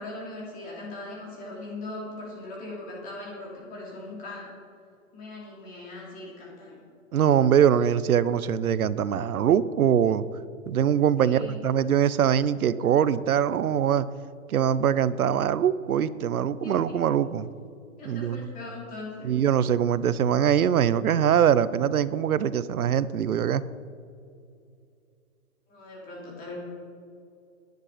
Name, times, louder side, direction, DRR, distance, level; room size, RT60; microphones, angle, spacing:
voice 1, 0.0-4.5 5.1-6.8 11.2-11.6 16.6-17.0 18.0-19.3 25.7-26.6, left 2 dB, 20° left, -4 dB, 3.2 m, -40 dB
voice 2, 7.1-10.2 10.7-14.1 14.5-17.5 18.0-18.5 19.2-23.6, right 9 dB, 85° right, 16 dB, 0.8 m, -23 dB
18.5 x 11.0 x 5.0 m, 2.5 s
hypercardioid pair, 155°, 42 cm